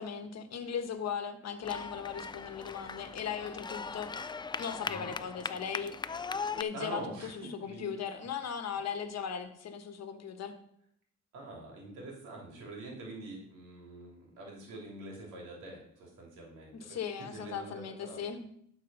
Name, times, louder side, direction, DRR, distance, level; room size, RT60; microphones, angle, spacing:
voice 1, 0.0-4.1 4.6-5.9 6.6-10.6 16.8-18.5, left 7 dB, 60° left, 8 dB, 1.2 m, -38 dB
sound 1, 1.6-6.6, left 5 dB, 15° left, 0.3 m, -39 dB
voice 2, 6.7-8.0 11.3-18.3, right 2 dB, 90° right, -1 dB, 2.9 m, -45 dB
11.5 x 4.7 x 5.4 m, 0.70 s
cardioid pair, 90°, 30 cm